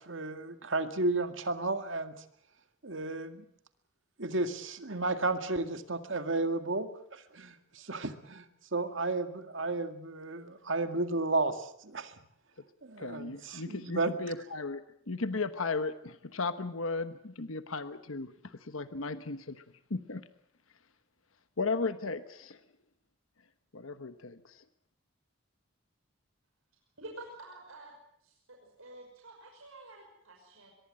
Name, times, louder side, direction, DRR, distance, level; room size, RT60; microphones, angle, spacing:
voice 1, 0.1-2.1 2.8-3.4 4.2-8.4 8.7-12.1 12.8-14.1, right 2 dB, 65° right, 8 dB, 2.0 m, -33 dB
voice 2, 13.0-19.6 19.9-20.2 21.6-22.6 23.7-24.6, left 3 dB, 80° left, 11 dB, 1.2 m, -36 dB
voice 3, 27.0-27.9 28.2-30.7, right 2 dB, 85° right, 1 dB, 5.7 m, -49 dB
23.5 x 22.5 x 7.7 m, 0.69 s
head